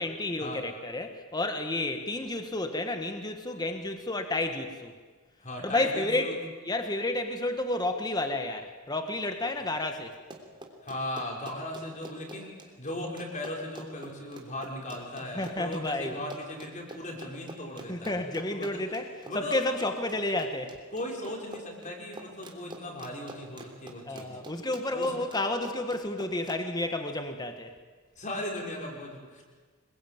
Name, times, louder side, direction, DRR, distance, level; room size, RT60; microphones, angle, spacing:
voice 1, 0.0-4.9 5.6-6.3 6.6-10.2 15.3-16.1 17.9-19.1 19.3-20.8 24.1-27.7, left 2 dB, 20° left, 6 dB, 1.6 m, -31 dB
voice 2, 5.4-6.4 10.8-18.2 18.5-18.8 19.3-19.6 20.9-24.4 24.9-25.1 28.2-29.4, left 1 dB, 35° left, 0 dB, 5.7 m, -37 dB
Run, 10.1-26.6, right 1 dB, 20° right, 3.3 m, -46 dB
26.5 x 22.0 x 9.3 m, 1.4 s
head